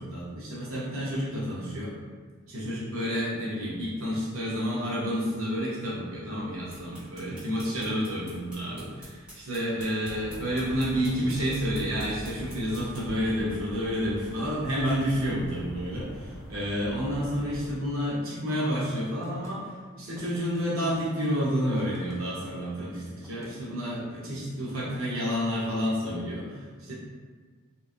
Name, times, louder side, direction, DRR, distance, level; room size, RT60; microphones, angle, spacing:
voice 1, 0.0-2.0 2.5-26.9, equal, 75° right, -7 dB, 0.7 m, -30 dB
sound 1, 6.4-13.2, equal, 5° right, 0.9 m, -50 dB
sound 2, 10.0-17.7, equal, 85° left, 0.6 m, -42 dB
sound 3, 19.2-19.6 20.1-21.1 21.8-22.5 23.2-23.5, left 1 dB, 15° left, 0.4 m, -51 dB
3.0 x 2.4 x 2.4 m, 1.5 s
head